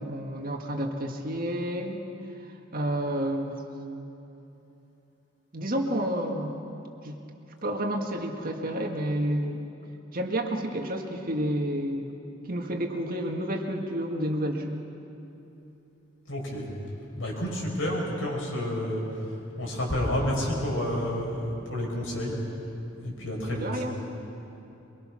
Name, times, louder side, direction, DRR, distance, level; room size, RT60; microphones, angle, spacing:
voice 1, 0.0-2.0 2.4-3.6 5.5-6.6 7.0-7.2 7.6-9.7 10.1-12.2 12.5-14.8 23.4-23.9, right 1 dB, 45° right, 2 dB, 2.0 m, -30 dB
voice 2, 16.3-16.7 17.2-22.4 23.0-23.8, left 1 dB, 85° left, -2 dB, 5.8 m, -30 dB
23.0 x 23.0 x 6.3 m, 2.9 s
head